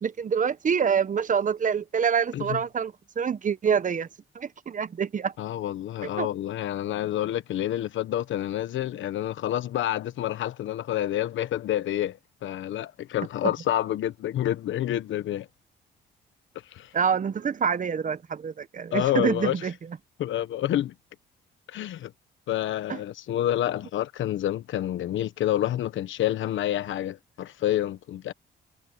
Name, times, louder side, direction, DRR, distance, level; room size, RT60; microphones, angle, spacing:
voice 1, 0.0-4.1 4.3-5.3 6.0-6.3 13.4-13.5 16.9-19.7 22.9-23.0, right 7 dB, 40° right, 1.1 m, -26 dB
voice 2, 5.4-15.5 16.7-16.9 18.9-19.5 20.2-20.9 21.7-22.1 22.5-28.3, left 12 dB, 75° left, 1.2 m, -28 dB
cardioid pair, 90°, 20 cm